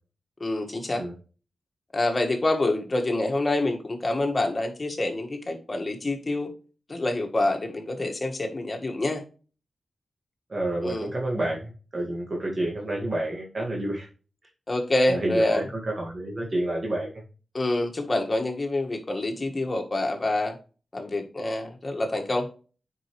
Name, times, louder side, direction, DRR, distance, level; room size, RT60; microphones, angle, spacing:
voice 1, 0.4-1.0 1.9-6.5 6.9-9.2 10.8-11.1 14.7-15.6 17.5-20.6 20.9-22.5, left 2 dB, 35° left, 3 dB, 1.7 m, -26 dB
voice 2, 10.5-14.1 15.1-17.2, right 1 dB, 45° right, -2 dB, 1.9 m, -29 dB
7.6 x 5.6 x 3.2 m, 0.36 s
cardioid pair, 60°, 0 cm